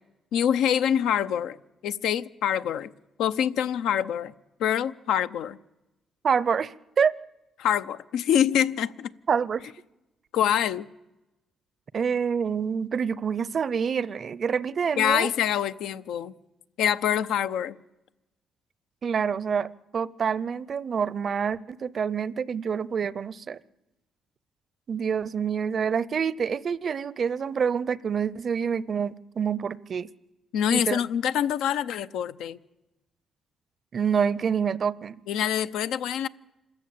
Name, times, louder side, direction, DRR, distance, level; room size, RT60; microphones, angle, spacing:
voice 1, 0.3-1.6 1.8-2.9 3.2-4.3 4.6-5.6 7.6-9.1 10.3-10.9 15.0-16.3 16.8-17.8 30.5-32.6 35.3-36.3, left 9 dB, 85° left, 0.7 m, -25 dB
voice 2, 6.2-7.1 9.3-9.6 11.9-15.3 19.0-23.6 24.9-30.1 30.7-31.0 33.9-35.2, right 6 dB, 50° right, 0.6 m, -27 dB
26.5 x 14.0 x 8.6 m
cardioid pair, 90°, 0 cm